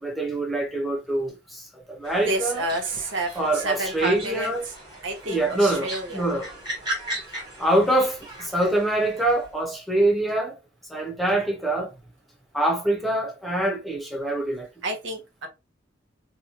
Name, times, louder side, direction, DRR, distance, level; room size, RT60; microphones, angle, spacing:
voice 1, 0.0-2.6 3.4-4.7 5.3-6.5 7.6-10.6 10.9-11.9 12.5-14.7, right 1 dB, ahead, 0.6 m, -24 dB
sound 1, 2.0-9.5, right 1 dB, 20° right, 1.3 m, -37 dB
voice 2, 2.2-4.7 5.0-6.2 14.8-15.5, right 2 dB, 80° right, 0.8 m, -29 dB
2.6 x 2.2 x 2.8 m
head